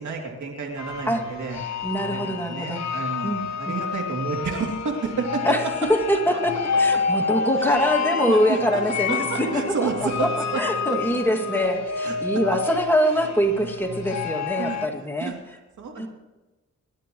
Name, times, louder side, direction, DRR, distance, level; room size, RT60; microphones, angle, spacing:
voice 1, 0.0-1.6 2.1-5.4 7.6-7.7 8.3-8.8 9.1-11.0 12.0-12.2 13.0-13.3 14.6-14.8 15.2-16.1, right 4 dB, 70° right, 1 dB, 2.8 m, -31 dB
sound 1, 0.8-14.9, left 5 dB, 60° left, 1.4 m, -29 dB
voice 2, 1.8-2.8 3.2-3.7 5.4-5.6 6.1-10.3 10.5-15.3 16.0-16.1, equal, 5° left, 2 dB, 2.2 m, -24 dB
Trumpet, 6.2-11.9, right 4 dB, 40° right, 4.5 m, -38 dB
24.5 x 11.5 x 3.1 m, 1.1 s
cardioid pair, 60°, 31 cm